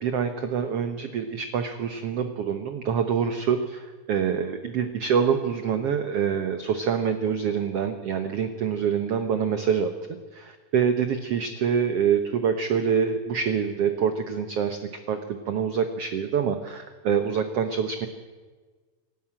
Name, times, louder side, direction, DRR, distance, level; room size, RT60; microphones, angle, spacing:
voice 1, 0.0-9.9 10.3-14.8 15.1-18.1, right 7 dB, 65° right, 8 dB, 1.6 m, -26 dB
27.0 x 12.0 x 8.8 m, 1.4 s
omnidirectional pair, 3.9 m